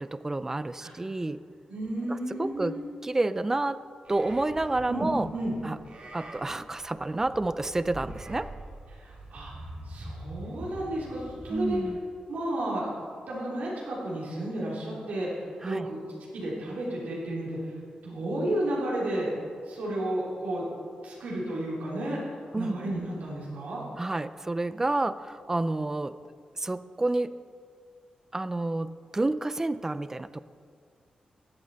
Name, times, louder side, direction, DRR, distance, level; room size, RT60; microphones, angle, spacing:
voice 1, 0.0-1.4 2.1-3.8 4.1-5.3 5.6-5.8 6.1-8.5 11.5-12.0 15.6-15.9 22.5-22.8 24.0-26.2 26.6-27.4 28.3-30.4, right 2 dB, 20° right, 14 dB, 0.4 m, -29 dB
voice 2, 1.7-2.8 4.9-5.6 8.9-9.5 9.8-11.8 12.3-16.0 16.3-17.7 18.0-19.3 19.6-20.6 21.0-22.2 22.5-23.8, right 1 dB, 90° right, -6 dB, 3.0 m, -32 dB
Livestock farm animals working animals, 4.0-11.9, right 1 dB, 50° right, 2.2 m, -44 dB
15.0 x 8.5 x 4.0 m, 2.2 s
wide cardioid pair, 105°, 3 cm